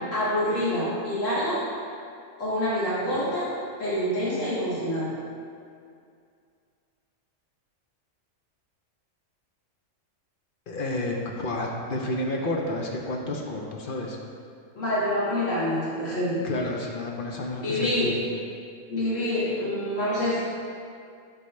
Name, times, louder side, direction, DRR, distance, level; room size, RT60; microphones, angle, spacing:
voice 1, 0.1-1.6 2.4-3.5 3.8-5.1 14.8-16.4 17.6-18.1 18.9-20.4, left 1 dB, 70° left, -10 dB, 2.4 m, -26 dB
voice 2, 10.7-14.2 16.4-18.2, left 2 dB, 50° left, 0 dB, 0.8 m, -30 dB
8.5 x 5.3 x 3.2 m, 2.3 s
omnidirectional pair, 1.4 m